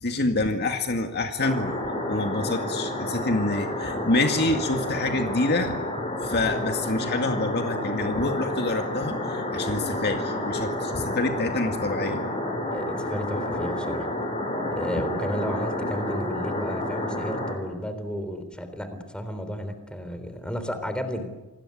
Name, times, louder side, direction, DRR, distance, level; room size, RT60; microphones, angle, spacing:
voice 1, 0.0-1.7 2.1-5.8 6.2-12.3, left 2 dB, 45° left, 5 dB, 2.1 m, -27 dB
sound 1, 1.4-17.5, left 1 dB, 30° left, 7.1 m, -30 dB
voice 2, 12.7-14.1 14.7-21.2, equal, 5° left, 9 dB, 3.7 m, -33 dB
28.0 x 20.5 x 8.7 m, 1.1 s
head